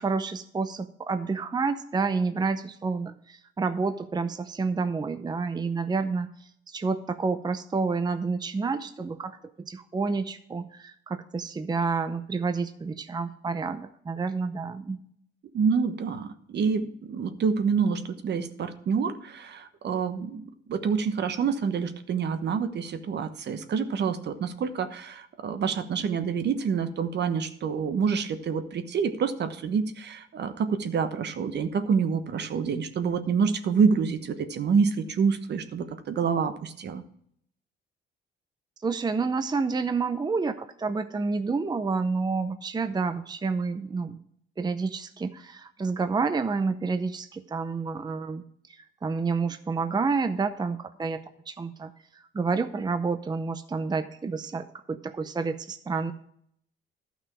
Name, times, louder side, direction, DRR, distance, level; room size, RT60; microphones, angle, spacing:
voice 1, 0.0-15.0 38.8-44.2 44.6-48.4 48.7-56.1, right 4 dB, 20° right, 9 dB, 0.6 m, -29 dB
voice 2, 15.5-37.0, right 6 dB, 60° right, 9 dB, 1.1 m, -27 dB
12.0 x 6.1 x 4.7 m, 0.67 s
cardioid pair, 90°, 20 cm